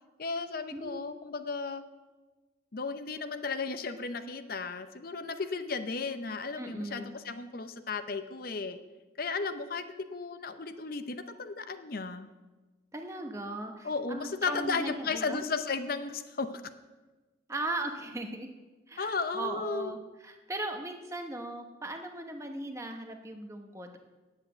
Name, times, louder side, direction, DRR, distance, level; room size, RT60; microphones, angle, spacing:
voice 1, 0.2-1.8 2.7-8.8 9.2-12.3 13.8-16.5 19.0-20.0, left 4 dB, 50° left, 10 dB, 0.7 m, -34 dB
voice 2, 6.6-7.1 12.9-15.4 17.5-18.5 18.9-24.0, right 2 dB, 15° right, 4 dB, 1.0 m, -38 dB
9.8 x 8.2 x 7.9 m, 1.2 s
head